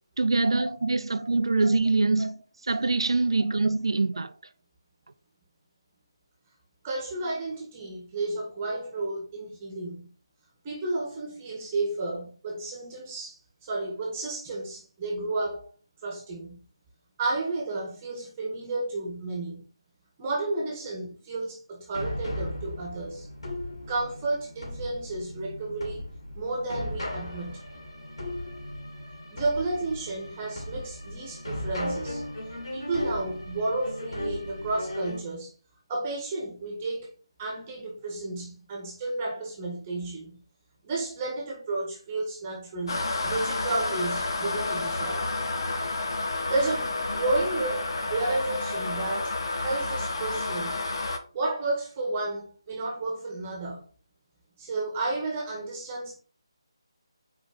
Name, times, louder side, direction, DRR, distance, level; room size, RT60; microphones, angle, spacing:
voice 1, 0.2-2.4 2.7-4.3, right 3 dB, 70° right, 0.7 m, -24 dB
voice 2, 6.8-10.1 10.6-15.7 16.0-16.6 17.2-19.6 20.2-23.3 23.9-27.6 29.3-32.2 32.7-35.5 35.9-37.1 37.4-40.4 40.8-45.2 46.5-50.8 51.3-53.8 54.6-56.2, right 2 dB, 25° right, 1.8 m, -32 dB
sound 1, 21.9-35.2, left 1 dB, 80° left, 3.0 m, -36 dB
sound 2, 42.9-51.2, left 2 dB, 60° left, 1.2 m, -30 dB
5.2 x 4.6 x 5.1 m
figure-of-eight pair, 155°, 3 cm